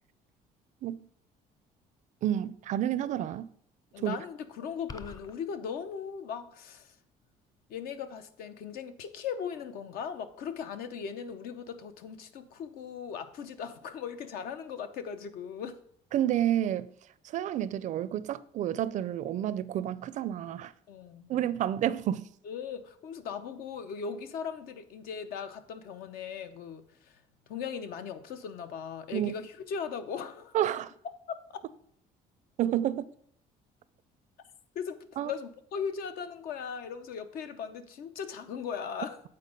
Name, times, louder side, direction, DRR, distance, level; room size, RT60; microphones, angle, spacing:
voice 1, 2.2-3.5 4.0-4.2 16.1-16.9 17.2-20.7 21.3-22.3 29.1-29.3 30.5-30.9 32.6-33.1 35.2-35.3, right 11 dB, 50° right, 0.4 m, -30 dB
voice 2, 3.9-7.0 7.7-15.8 20.9-21.3 22.4-27.2 27.5-30.6 31.3-31.6 34.7-39.2, left 7 dB, 75° left, 0.8 m, -38 dB
sound 1, 4.9-5.4, left 4 dB, 25° left, 0.4 m, -43 dB
8.3 x 4.3 x 5.1 m
cardioid pair, 130°, 16 cm